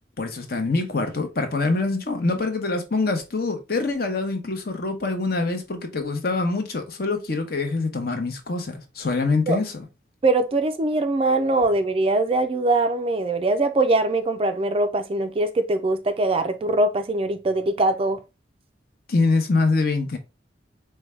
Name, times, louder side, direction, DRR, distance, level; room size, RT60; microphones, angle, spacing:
voice 1, 0.2-9.9 19.1-20.2, left 3 dB, 55° left, 0.8 m, -24 dB
voice 2, 10.2-18.2, right 2 dB, 30° right, 0.3 m, -22 dB
4.6 x 2.2 x 3.1 m
head